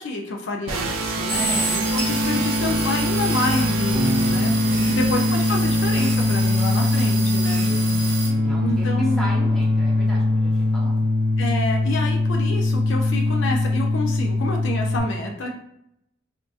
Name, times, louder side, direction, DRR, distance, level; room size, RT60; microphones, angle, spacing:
voice 1, 0.0-4.5 4.9-7.7 8.6-9.2 11.4-15.5, left 2 dB, 60° left, 1 dB, 0.4 m, -28 dB
sound 1, 0.7-15.0, left 1 dB, 90° right, 0.5 m, -22 dB
voice 2, 1.3-1.7 4.6-5.3 7.6-11.1, equal, ahead, -5 dB, 0.7 m, -36 dB
sound 2, 1.3-8.3, right 3 dB, 30° right, 1.0 m, -30 dB
Electric guitar / Bass guitar, 3.9-10.3, right 2 dB, 80° left, 1.4 m, -36 dB
3.5 x 2.4 x 2.3 m, 0.77 s
head